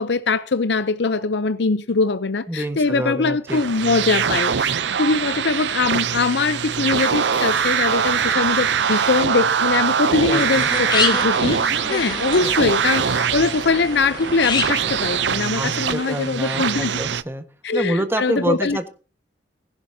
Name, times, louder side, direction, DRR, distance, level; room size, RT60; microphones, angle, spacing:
voice 1, 0.0-17.0 17.6-18.8, left 4 dB, 75° left, 0.7 m, -22 dB
voice 2, 2.5-3.6 10.3-10.7 15.5-17.4 17.7-18.9, right 1 dB, 15° right, 1.5 m, -26 dB
sound 1, 3.5-17.2, right 7 dB, 80° right, 0.6 m, -23 dB
sound 2, 7.3-11.4, left 1 dB, 10° left, 3.7 m, -43 dB
sound 3, 10.1-15.5, left 4 dB, 25° left, 1.9 m, -28 dB
20.5 x 11.5 x 2.8 m
head